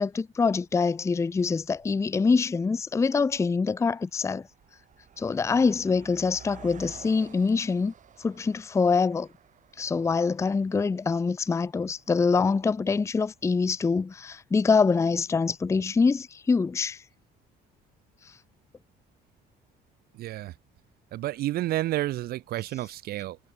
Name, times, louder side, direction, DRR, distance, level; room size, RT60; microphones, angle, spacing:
voice 1, 0.0-4.5 5.2-7.9 8.2-9.3 9.8-17.0, left 4 dB, 15° left, 0.5 m, -25 dB
Car passing by, 1.7-1.8 2.6-2.8 3.1-13.5, right 9 dB, 50° right, 4.4 m, -52 dB
voice 2, 20.2-20.5 21.1-23.4, right 15 dB, 65° right, 0.6 m, -30 dB
cardioid pair, 110°, 17 cm